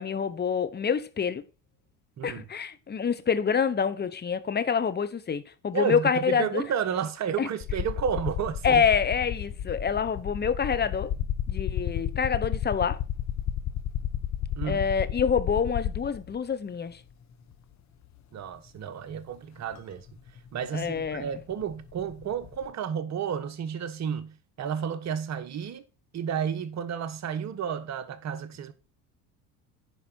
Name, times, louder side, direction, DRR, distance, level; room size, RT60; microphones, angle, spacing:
voice 1, 0.0-1.4 2.2-6.6 7.4-7.5 8.6-11.1 11.5-13.0 14.6-17.0 20.7-21.2, left 6 dB, 25° left, 1.0 m, -26 dB
voice 2, 2.2-2.5 5.7-8.8 14.6-14.8 18.3-20.1 20.5-25.8 26.1-28.7, right 7 dB, 45° right, 1.3 m, -32 dB
sound 1, 7.6-16.4 17.5-17.6 19.8-19.9 20.1-22.7, left 10 dB, 45° left, 1.3 m, -32 dB
10.0 x 5.0 x 4.6 m
hypercardioid pair, 80°, 39 cm